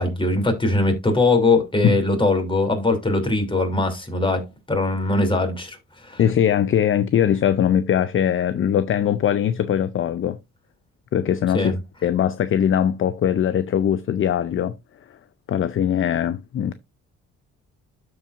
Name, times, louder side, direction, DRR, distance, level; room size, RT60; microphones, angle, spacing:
voice 1, 0.0-5.8 6.0-6.2 11.5-11.7, left 2 dB, 15° left, 2.9 m, -21 dB
voice 2, 6.2-10.4 11.1-11.8 12.0-14.7 15.5-16.7, left 9 dB, 45° left, 0.5 m, -21 dB
12.5 x 4.6 x 2.5 m
cardioid pair, 90°, 30 cm